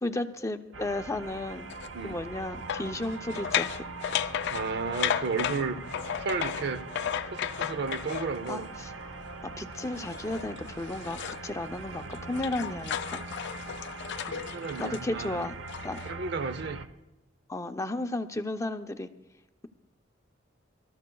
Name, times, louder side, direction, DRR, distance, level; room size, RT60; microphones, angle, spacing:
voice 1, 0.0-1.7 2.0-3.7 8.5-8.9 9.6-13.2 14.2-14.5 14.8-15.5 15.8-16.0 17.5-19.1, left 2 dB, 15° left, 7 dB, 0.6 m, -33 dB
sound 1, 0.7-16.9, right 3 dB, 90° right, 0.8 m, -42 dB
sound 2, 1.7-1.9 2.7-8.7 9.9-11.5 11.9-16.1, left 9 dB, 60° left, 0.4 m, -34 dB
voice 2, 4.5-5.8 6.2-6.9 7.3-8.7 14.5-15.5 16.0-16.9, right 4 dB, 60° right, 12 dB, 0.7 m, -33 dB
25.5 x 13.5 x 2.3 m, 1.0 s
head